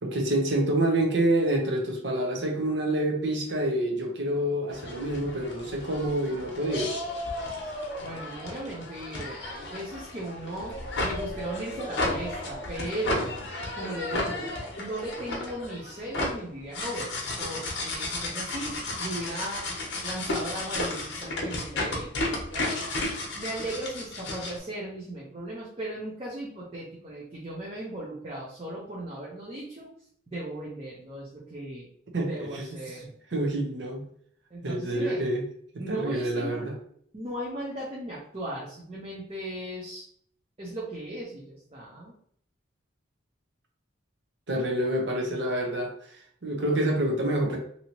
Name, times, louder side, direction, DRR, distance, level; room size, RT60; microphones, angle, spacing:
voice 1, 0.0-6.9 32.1-32.3 32.5-32.6 33.3-34.0 34.6-35.4 35.9-36.7 44.5-47.6, right 1 dB, 65° right, 1 dB, 0.7 m, -27 dB
sound 1, 4.7-24.6, left 2 dB, 70° left, 0.7 m, -33 dB
voice 2, 8.0-10.8 11.0-13.3 13.7-14.5 14.8-19.7 20.0-22.1 22.5-22.9 23.4-29.9 30.3-31.9 32.2-33.1 34.5-35.2 35.8-36.7 37.1-40.0 40.6-42.1, right 1 dB, 30° right, -5 dB, 0.6 m, -37 dB
2.8 x 2.7 x 2.9 m, 0.64 s
head